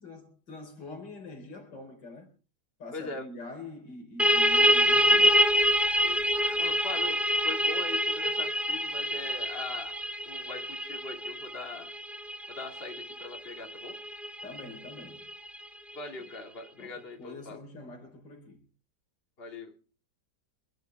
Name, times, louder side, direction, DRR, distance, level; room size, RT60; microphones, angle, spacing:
voice 1, 0.0-2.3 2.8-5.4 14.4-15.2 16.8-16.9 17.2-18.6, left 2 dB, 90° left, 4.9 m, -45 dB
voice 2, 2.9-3.3 6.0-9.9 10.3-11.9 12.5-14.0 15.9-17.6 19.4-19.7, left 3 dB, 35° left, 2.5 m, -41 dB
sound 1, 4.2-15.6, equal, ahead, 0.5 m, -26 dB
26.0 x 12.0 x 3.4 m
omnidirectional pair, 1.9 m